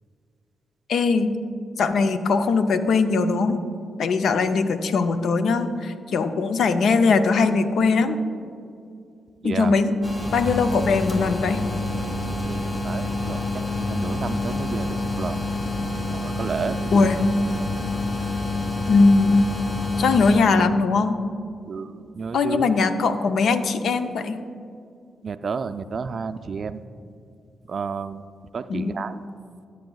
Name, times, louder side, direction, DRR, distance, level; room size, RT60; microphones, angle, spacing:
voice 1, 0.9-1.3 1.8-3.6 4.0-8.2 9.4-9.9 10.3-11.6 16.9-17.2 18.9-19.5 20.0-21.2 22.3-24.4 28.7-29.0, left 4 dB, 70° left, 10 dB, 0.4 m, -20 dB
voice 2, 9.4-9.7 12.5-15.4 16.2-17.1 21.7-22.8 25.2-26.8 27.7-28.2 28.5-29.2, right 5 dB, 55° right, 12 dB, 0.3 m, -31 dB
sound 1, 10.0-20.4, left 2 dB, 40° left, 1.3 m, -27 dB
13.0 x 8.2 x 2.3 m, 2.4 s
supercardioid pair, 50°, 0 cm